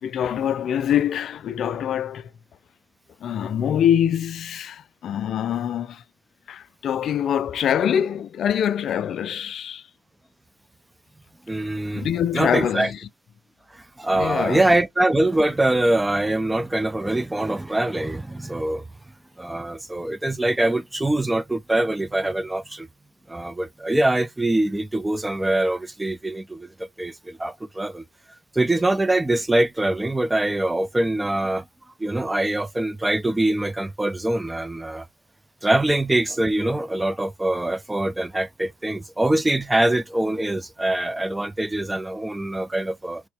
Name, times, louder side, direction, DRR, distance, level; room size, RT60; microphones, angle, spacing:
voice 1, 0.0-2.3 3.2-6.0 6.5-9.9 11.9-13.0 14.1-14.7, left 9 dB, 55° left, 0.4 m, -24 dB
voice 2, 11.5-12.1 12.3-12.9 13.7-18.8 19.4-22.9 23.3-28.0 28.5-31.6 32.0-35.1 35.6-43.2, right 1 dB, 10° right, 0.5 m, -23 dB
3.0 x 2.8 x 3.3 m
supercardioid pair, 70°, 0 cm